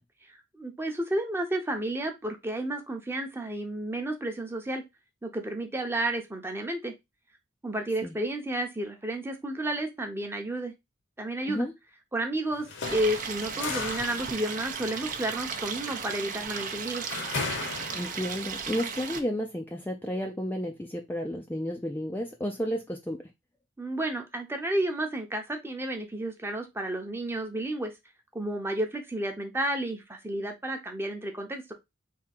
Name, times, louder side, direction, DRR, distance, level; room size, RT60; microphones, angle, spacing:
voice 1, 0.5-4.8 5.2-6.9 7.6-10.7 11.2-11.7 12.1-17.1 23.8-27.9 28.3-31.7, right 1 dB, 10° right, 0.8 m, -31 dB
sound 1, 12.5-18.5, left 4 dB, 60° left, 0.9 m, -37 dB
Stream, 12.8-19.2, right 6 dB, 40° right, 0.7 m, -36 dB
voice 2, 17.9-23.2, equal, 10° left, 0.4 m, -32 dB
3.6 x 2.8 x 4.2 m
head